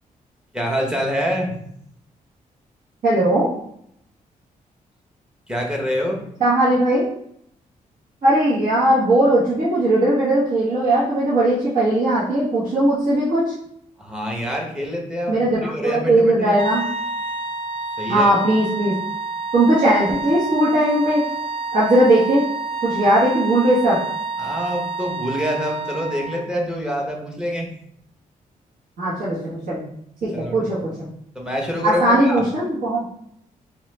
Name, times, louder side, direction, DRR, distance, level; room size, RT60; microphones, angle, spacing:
voice 1, 0.5-1.5 5.5-6.2 14.0-16.6 18.0-18.3 24.4-27.7 30.3-30.6 31.3-32.4, equal, 5° right, 0 dB, 0.8 m, -26 dB
voice 2, 3.0-3.5 6.4-7.0 8.2-13.4 15.3-16.8 18.1-18.9 19.5-21.2 21.7-22.4 22.8-24.0 29.0-29.8 30.2-30.9 31.8-33.0, right 1 dB, 70° right, -9 dB, 1.3 m, -18 dB
sound 1, 16.5-26.5, right 3 dB, 40° right, 0.4 m, -29 dB
3.8 x 3.1 x 3.2 m, 0.71 s
cardioid pair, 125°, 15 cm